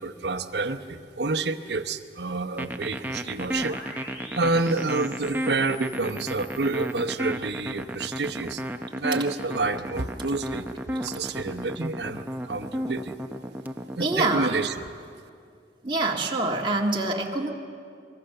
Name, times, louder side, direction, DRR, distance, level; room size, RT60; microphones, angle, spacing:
voice 1, 0.0-3.8 4.3-8.6 8.9-13.2 14.0-14.7, right 3 dB, 70° right, 10 dB, 0.9 m, -28 dB
sound 1, 2.6-14.2, equal, 10° right, 0.7 m, -33 dB
sound 2, 3.5-7.1, left 1 dB, 75° left, 6.7 m, -45 dB
voice 2, 14.0-14.6 15.8-17.5, right 2 dB, 25° right, 0 dB, 1.9 m, -26 dB
24.0 x 23.0 x 6.7 m, 2.3 s
head